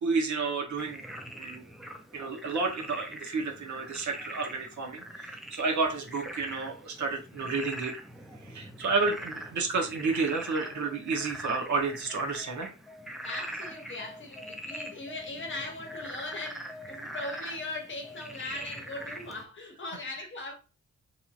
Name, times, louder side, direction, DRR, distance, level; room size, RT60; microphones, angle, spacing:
voice 1, 0.0-1.0 1.3-1.6 2.1-7.9 8.4-12.7, right 4 dB, 70° right, 0.9 m, -31 dB
Frog, 0.8-19.4, equal, ahead, 0.4 m, -43 dB
voice 2, 13.2-20.6, left 2 dB, 40° left, 0.8 m, -39 dB
3.0 x 2.7 x 2.4 m
wide cardioid pair, 125°, 30 cm